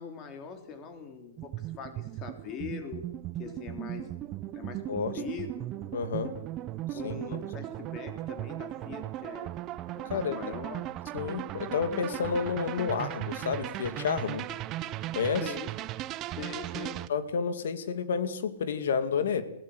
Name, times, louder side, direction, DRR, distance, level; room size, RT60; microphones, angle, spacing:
voice 1, 0.0-3.1 3.4-4.1 4.5-5.7 6.9-9.5 9.9-10.9 15.4-15.7 16.4-17.0, left 6 dB, 25° left, 7 dB, 3.3 m, -42 dB
sound 1, 1.4-17.1, right 14 dB, 25° right, 0.7 m, -37 dB
voice 2, 4.9-5.2 5.9-6.3 6.9-7.1 10.1-10.4 11.1-14.4 15.1-15.4 17.1-19.4, left 6 dB, 75° left, 11 dB, 2.4 m, -30 dB
21.5 x 16.5 x 8.0 m, 0.78 s
hypercardioid pair, 160°, 0 cm